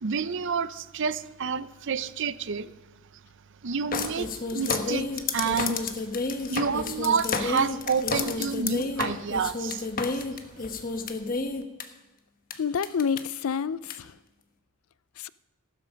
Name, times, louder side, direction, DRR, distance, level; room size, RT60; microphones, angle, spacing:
voice 1, 0.0-2.7 3.6-5.8 6.5-9.9 10.1-10.2, right 5 dB, 60° right, 0.6 m, -29 dB
sound 1, 3.9-11.8 12.5-12.6 12.8-13.2 13.9-14.0, left 4 dB, 40° left, 1.1 m, -30 dB
voice 2, 12.6-14.1 15.2-15.3, left 6 dB, 75° left, 0.5 m, -28 dB
14.5 x 12.5 x 5.2 m
head